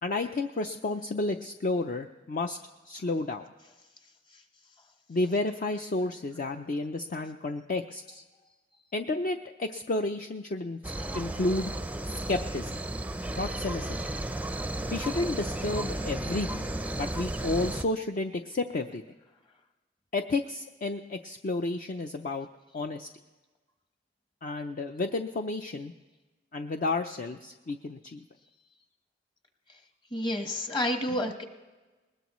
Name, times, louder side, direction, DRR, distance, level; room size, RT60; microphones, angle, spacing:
voice 1, 0.0-2.6 2.8-3.5 5.1-8.2 8.9-11.7 12.3-12.8 13.4-14.1 14.9-16.7 17.0-19.0 20.1-22.5 22.7-23.1 24.4-25.9 26.5-28.2, left 2 dB, 45° left, 6 dB, 0.5 m, -31 dB
sound 1, 10.8-17.8, right 1 dB, 10° right, 0.5 m, -34 dB
voice 2, 30.1-31.4, left 1 dB, 25° left, 5 dB, 1.3 m, -29 dB
20.5 x 19.5 x 3.1 m, 1.2 s
head